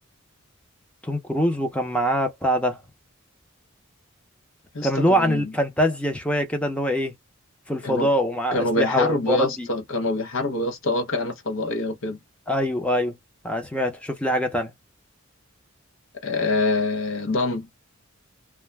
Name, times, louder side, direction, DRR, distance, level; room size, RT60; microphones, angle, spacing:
voice 1, 1.0-2.8 4.8-7.1 7.7-9.7 12.5-13.2 13.4-14.7, equal, 5° left, 0.6 m, -23 dB
voice 2, 4.7-5.5 7.8-8.1 8.5-12.2 16.2-17.7, left 2 dB, 65° left, 0.7 m, -25 dB
2.2 x 2.2 x 3.3 m
head